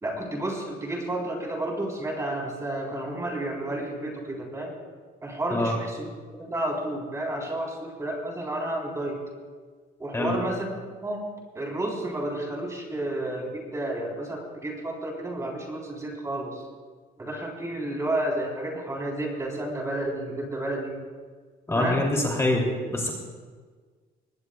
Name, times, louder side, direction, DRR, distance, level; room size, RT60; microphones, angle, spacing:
voice 1, 0.0-4.7 5.2-6.1 6.4-9.2 10.0-10.7 11.0-11.3 11.5-16.6 17.2-21.0 21.7-22.1, right 1 dB, 20° right, -1 dB, 3.8 m, -31 dB
voice 2, 21.7-22.6 22.9-23.1, left 2 dB, 15° left, -1 dB, 2.8 m, -24 dB
21.5 x 18.5 x 2.3 m, 1.5 s
cardioid pair, 110°, 17 cm